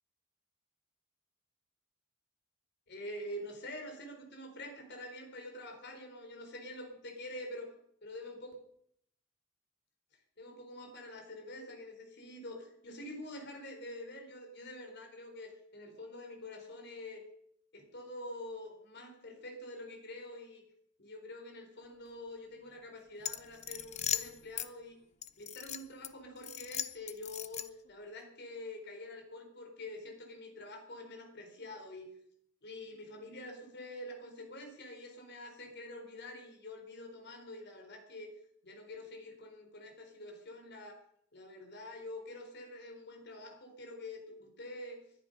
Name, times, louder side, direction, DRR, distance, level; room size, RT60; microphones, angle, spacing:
voice 1, 2.9-7.7 8.0-8.5 10.4-17.2 17.7-20.6 21.0-25.0 25.4-32.1 32.6-38.3 38.6-41.0 41.3-45.0, left 1 dB, 55° left, 4 dB, 4.2 m, -46 dB
sound 1, 23.2-24.7 25.2-26.1 26.4-27.9, left 10 dB, 35° left, 0.6 m, -38 dB
20.5 x 11.5 x 5.4 m, 0.69 s
head